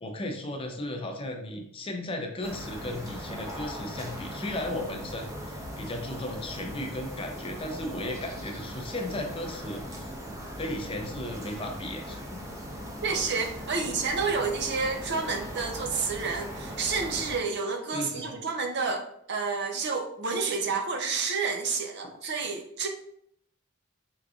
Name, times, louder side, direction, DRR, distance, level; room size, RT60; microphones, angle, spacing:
voice 1, 0.0-10.1 10.6-12.4 17.9-18.4, left 1 dB, 25° left, 4 dB, 0.5 m, -35 dB
sound 1, 2.4-17.4, equal, 15° right, 0.6 m, -39 dB
voice 2, 13.0-22.9, right 4 dB, 55° right, 4 dB, 0.6 m, -30 dB
4.9 x 3.8 x 2.4 m, 0.72 s
head